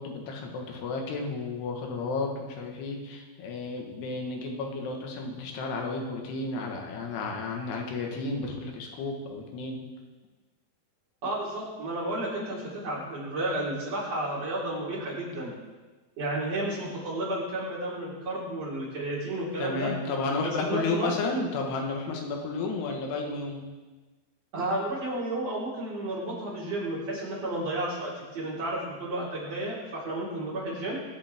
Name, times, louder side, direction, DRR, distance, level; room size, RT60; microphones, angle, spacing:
voice 1, 0.0-9.8 19.6-23.7, left 3 dB, 90° left, 1 dB, 3.6 m, -32 dB
voice 2, 11.2-15.5 16.2-19.9 20.4-21.4 24.5-31.0, right 1 dB, 40° right, -8 dB, 5.3 m, -32 dB
22.5 x 8.5 x 3.6 m, 1.3 s
omnidirectional pair, 4.5 m